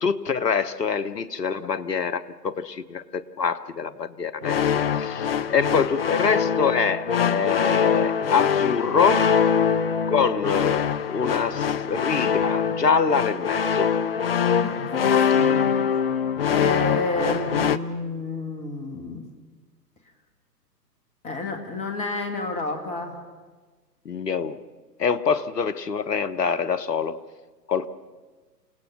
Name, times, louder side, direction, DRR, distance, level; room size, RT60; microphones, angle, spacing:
voice 1, 0.0-9.2 10.1-10.8 11.1-13.9 24.0-24.6 25.0-27.2 27.7-27.9, left 6 dB, 70° left, 1.2 m, -25 dB
sound 1, 4.4-17.8, left 7 dB, 35° left, 0.6 m, -23 dB
voice 2, 14.6-16.1 16.5-19.2 21.2-23.2, left 3 dB, 15° left, 1.8 m, -30 dB
28.5 x 18.0 x 6.2 m
figure-of-eight pair, 130°, 49 cm